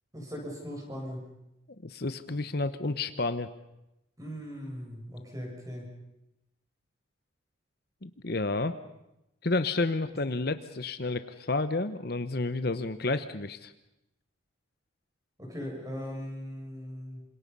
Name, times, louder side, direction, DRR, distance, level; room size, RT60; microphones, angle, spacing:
voice 1, 0.1-1.3 4.2-5.9 15.4-17.3, equal, 15° right, 0 dB, 7.0 m, -39 dB
voice 2, 1.8-3.5 8.0-8.7 9.4-13.7, left 3 dB, 50° left, 11 dB, 1.0 m, -30 dB
27.5 x 26.5 x 5.5 m, 0.89 s
head